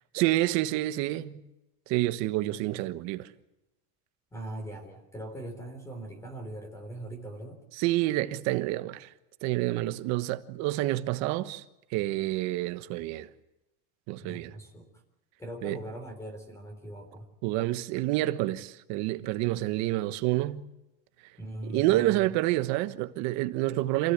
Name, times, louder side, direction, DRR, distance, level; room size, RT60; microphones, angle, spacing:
voice 1, 0.1-1.4 1.9-3.3 7.8-9.1 9.4-11.6 11.9-13.3 14.1-14.5 15.6-15.8 17.4-20.6 21.6-24.1, right 17 dB, 55° right, 1.3 m, -28 dB
voice 2, 4.3-7.6 14.2-14.9 15.4-17.3 21.4-22.3, right 1 dB, 10° left, 3.7 m, -40 dB
27.5 x 16.5 x 8.2 m
cardioid pair, 155°, 33 cm